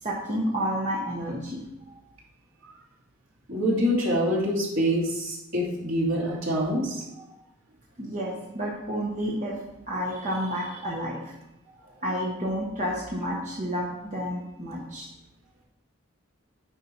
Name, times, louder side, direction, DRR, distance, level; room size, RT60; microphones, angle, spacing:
voice 1, 0.0-1.6 8.0-9.6 9.9-11.3 12.0-15.1, equal, 35° right, -4 dB, 1.1 m, -30 dB
voice 2, 3.5-7.1, equal, 70° right, -4 dB, 2.4 m, -25 dB
9.3 x 4.6 x 4.5 m, 0.87 s
head